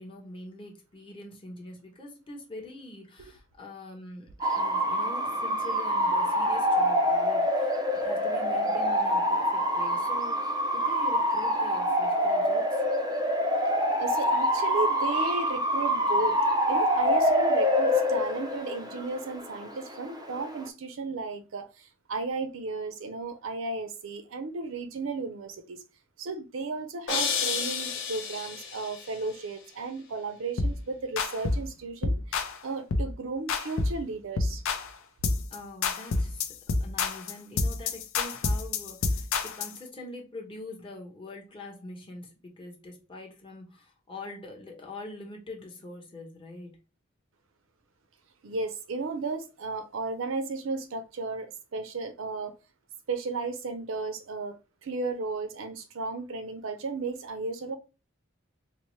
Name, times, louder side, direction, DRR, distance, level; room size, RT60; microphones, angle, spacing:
voice 1, 0.0-12.8 35.5-46.8, left 2 dB, 25° left, 0.9 m, -44 dB
Bark / Motor vehicle (road) / Siren, 4.4-20.7, equal, 20° right, 0.4 m, -26 dB
voice 2, 14.0-16.4 16.7-25.8 26.2-34.6 48.4-52.5 53.1-57.8, right 3 dB, 70° right, 0.5 m, -34 dB
sound 1, 27.1-29.2, left 6 dB, 60° left, 0.8 m, -31 dB
sound 2, 30.6-30.8 31.2-31.7 32.0-32.6 32.9-33.1 33.5-34.0 34.4-34.9 35.2-35.6 35.8-39.8, left 3 dB, 80° left, 0.5 m, -28 dB
4.3 x 2.0 x 3.1 m
head